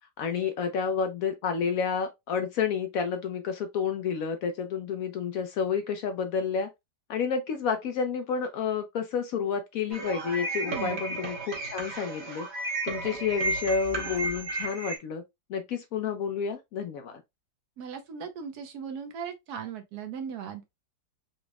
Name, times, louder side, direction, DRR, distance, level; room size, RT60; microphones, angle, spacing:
voice 1, 0.2-6.7 7.1-12.5 12.8-15.2 15.5-17.2, left 6 dB, 70° left, 0.9 m, -30 dB
sound 1, 9.9-15.0, right 2 dB, 45° right, 1.1 m, -33 dB
voice 2, 10.6-11.0 17.8-20.6, right 7 dB, 70° right, 1.2 m, -38 dB
4.1 x 2.9 x 2.3 m
omnidirectional pair, 1.8 m